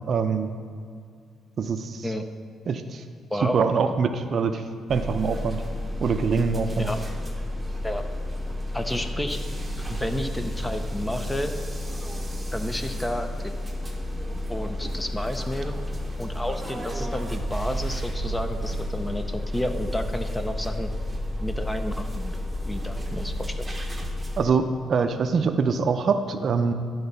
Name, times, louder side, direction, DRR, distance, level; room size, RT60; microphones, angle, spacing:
voice 1, 0.1-0.5 1.6-2.1 2.7-3.0 3.4-4.6 4.9-5.6 6.0-6.9 24.4-26.7, right 5 dB, 55° right, 8 dB, 0.5 m, -24 dB
sound 1, 4.9-24.4, left 1 dB, 15° right, 1.1 m, -31 dB
voice 2, 8.7-9.4 9.9-11.5 12.5-13.3 14.5-15.7 16.2-20.9 21.4-23.6, equal, 10° left, 7 dB, 0.6 m, -31 dB
11.5 x 4.0 x 5.5 m, 2.2 s
cardioid pair, 90°, 0 cm